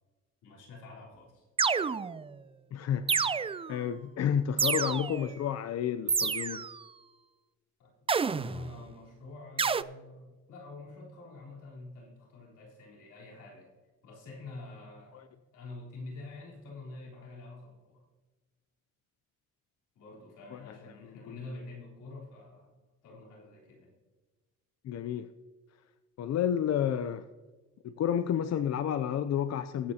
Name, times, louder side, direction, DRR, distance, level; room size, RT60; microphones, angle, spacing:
voice 1, 0.4-1.5 7.8-13.7 14.0-15.3 15.5-18.0 20.0-22.7 23.0-23.9, left 2 dB, 85° left, -3 dB, 3.9 m, -47 dB
sound 1, 1.6-2.3 3.1-3.8 4.6-5.3 6.1-6.8 8.1-8.7 9.6-9.8, right 5 dB, 20° right, 0.3 m, -29 dB
voice 2, 2.7-3.4 3.7-6.7 15.1-15.2 20.5-20.6 24.8-25.3 26.2-27.3 27.8-29.9, left 9 dB, 60° left, 10 dB, 0.6 m, -30 dB
20.0 x 8.6 x 2.9 m, 1.3 s
cardioid pair, 90°, 30 cm